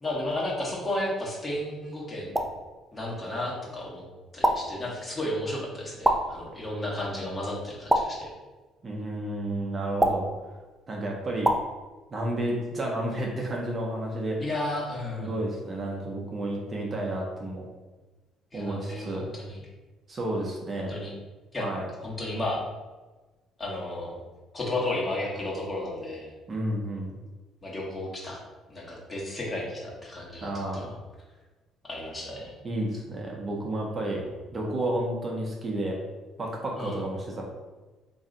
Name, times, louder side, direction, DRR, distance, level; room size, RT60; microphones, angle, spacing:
voice 1, 0.0-2.3 2.9-4.0 4.3-8.3 14.4-15.4 18.5-19.6 20.8-21.1 21.5-21.6 22.0-22.6 23.6-24.2 24.5-26.3 27.6-28.4 28.7-30.9 31.9-32.5 36.7-37.0, left 1 dB, 25° left, -4 dB, 1.3 m, -33 dB
sound 1, 2.4-2.7 4.4-4.8 6.0-6.5 7.9-8.3 10.0-10.4 11.5-11.7, right 1 dB, 10° right, 0.4 m, -25 dB
voice 2, 8.8-10.3 10.9-11.5 12.1-14.4 15.2-17.6 18.5-19.3 20.1-20.9 21.6-21.8 26.5-27.1 30.4-30.9 32.6-34.2 34.5-36.0 36.4-37.4, right 1 dB, 35° right, -1 dB, 0.8 m, -31 dB
3.1 x 2.7 x 3.8 m, 1.2 s
cardioid pair, 85°, 0 cm